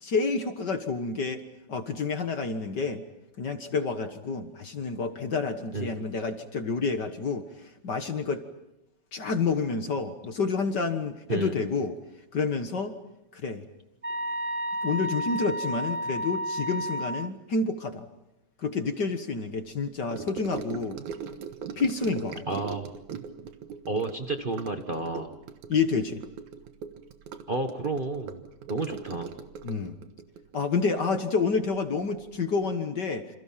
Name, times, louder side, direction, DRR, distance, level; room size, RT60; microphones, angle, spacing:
voice 1, 0.0-1.4 1.7-3.0 3.4-7.5 7.8-8.4 9.1-12.0 12.3-12.9 13.3-13.6 14.8-18.0 18.6-21.0 21.8-22.4 25.7-26.2 29.6-30.0 30.5-33.2, left 4 dB, 45° left, 7 dB, 1.6 m, -29 dB
voice 2, 11.3-11.6 22.5-22.9 23.9-25.4 27.5-28.4 28.7-29.3, right 3 dB, 60° right, 6 dB, 0.5 m, -31 dB
sound 1, 14.0-17.3, equal, 25° right, 0.7 m, -31 dB
Gurgling / Sink (filling or washing) / Trickle dribble, 20.1-31.8 32.0-32.4 32.6-32.7, right 7 dB, 85° right, 2.8 m, -40 dB
28.5 x 28.0 x 5.8 m, 0.90 s
omnidirectional pair, 3.3 m